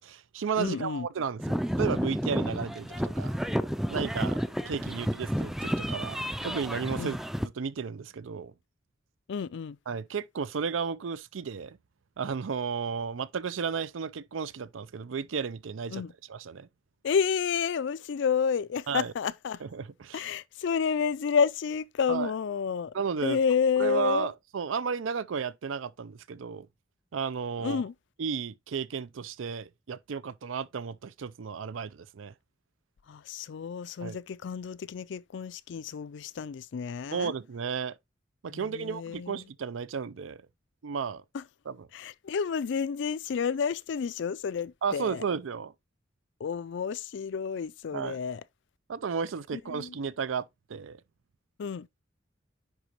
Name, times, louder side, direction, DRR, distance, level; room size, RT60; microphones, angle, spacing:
voice 1, 0.0-3.4 3.9-6.2 6.4-7.2 7.4-8.5 9.9-11.8 12.2-16.0 16.3-16.7 18.9-19.1 19.6-20.3 22.1-22.3 22.9-23.4 23.8-26.7 27.1-27.8 28.2-32.3 34.0-34.2 37.1-38.0 38.4-40.4 40.8-41.2 41.7-41.8 44.8-45.7 47.9-48.2 48.9-51.0, right 6 dB, 85° right, 0.5 m, -33 dB
voice 2, 0.6-1.1 4.9-5.0 7.0-7.2 9.3-9.8 15.9-16.1 17.0-19.6 20.1-22.9 23.2-24.3 27.6-27.9 33.1-37.3 38.5-39.4 41.3-41.4 41.9-45.2 46.4-48.4 49.5-50.0 51.6-51.9, left 6 dB, 65° left, 0.4 m, -30 dB
sound 1, 1.4-7.5, equal, ahead, 0.4 m, -31 dB
10.0 x 4.0 x 2.9 m
head